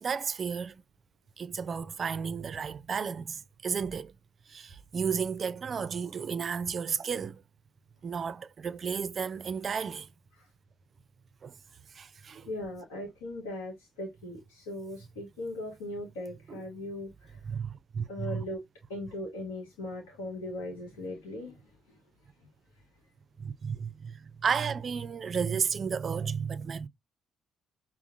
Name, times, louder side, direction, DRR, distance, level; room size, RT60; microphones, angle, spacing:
voice 1, 0.0-0.8 1.4-4.1 4.5-7.4 8.0-10.1 11.4-11.6 11.9-12.5 16.5-16.6 17.4-18.4 23.4-26.9, right 6 dB, 45° right, 0.4 m, -33 dB
voice 2, 12.4-17.4 18.1-18.6 18.9-21.6, left 1 dB, 75° left, 0.9 m, -39 dB
5.6 x 2.0 x 2.6 m
figure-of-eight pair, 40°, 0 cm